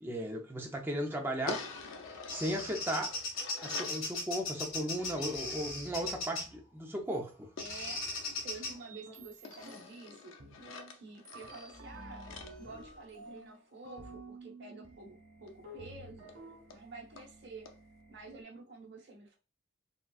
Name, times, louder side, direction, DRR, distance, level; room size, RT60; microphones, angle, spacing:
voice 1, 0.0-1.7 2.3-3.2 3.6-7.5, equal, 10° right, 0.5 m, -36 dB
sound 1, 1.5-4.0 7.6-9.0 9.4-13.6 15.5-15.6 15.8-15.9 16.3-16.4 16.7-16.8 17.2-17.3 17.6-17.8, left 4 dB, 70° left, 0.5 m, -47 dB
Bird vocalization bird call bird song, 1.8-6.6 7.6-8.7, left 2 dB, 90° left, 1.2 m, -38 dB
sound 2, 7.1-7.3 7.8-7.9 8.4-10.0 10.4-11.0 11.2-18.4, right 2 dB, 85° right, 1.3 m, -52 dB
voice 2, 7.6-8.1 8.4-10.4 10.9-12.3 12.6-16.3 16.7-17.7 18.1-19.4, right 3 dB, 55° right, 1.1 m, -49 dB
3.8 x 2.3 x 2.3 m
head